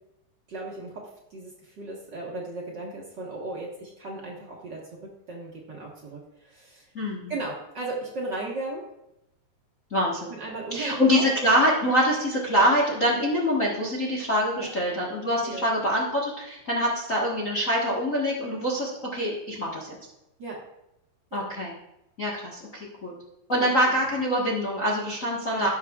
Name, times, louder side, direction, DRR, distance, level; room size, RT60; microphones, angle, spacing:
voice 1, 0.5-1.0 1.3-4.8 5.3-6.9 7.3-8.8 10.3-11.2 14.6-14.7 15.4-15.7 20.4-20.6 21.3-21.4 23.5-23.9 25.5-25.7, right 2 dB, 45° right, -3 dB, 1.7 m, -36 dB
voice 2, 6.9-7.3 9.9-10.3 10.7-20.0 21.3-21.7 22.2-23.1 23.5-25.7, equal, 40° left, -3 dB, 1.2 m, -25 dB
17.0 x 6.7 x 2.4 m, 0.86 s
omnidirectional pair, 3.4 m